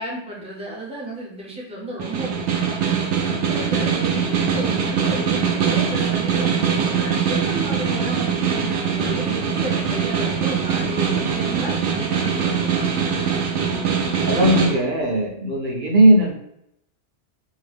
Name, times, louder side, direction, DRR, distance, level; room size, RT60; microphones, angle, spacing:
voice 1, 0.0-2.7 3.3-12.9, right 1 dB, 5° right, -4 dB, 0.6 m, -33 dB
Snare drum, 2.0-14.7, right 6 dB, 80° right, 0.9 m, -22 dB
voice 2, 14.3-16.3, right 1 dB, 55° right, 0 dB, 0.7 m, -17 dB
2.7 x 2.1 x 3.3 m, 0.77 s
omnidirectional pair, 1.2 m